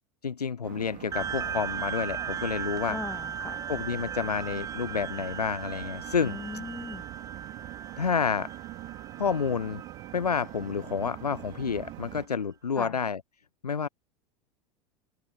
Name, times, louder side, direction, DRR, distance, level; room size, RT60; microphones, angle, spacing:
voice 1, 0.2-3.0 3.7-6.4 8.0-8.5 9.2-9.8 10.1-13.2 13.6-13.9, left 6 dB, 85° left, 0.7 m, -29 dB
sound 1, 0.6-12.3, right 18 dB, 45° right, 5.3 m, -44 dB
sound 2, 1.1-12.0, right 7 dB, 15° right, 0.5 m, -38 dB
voice 2, 2.9-3.7 6.2-7.1 12.8-13.0, left 3 dB, 10° left, 2.1 m, -39 dB
figure-of-eight pair, 85°, 20 cm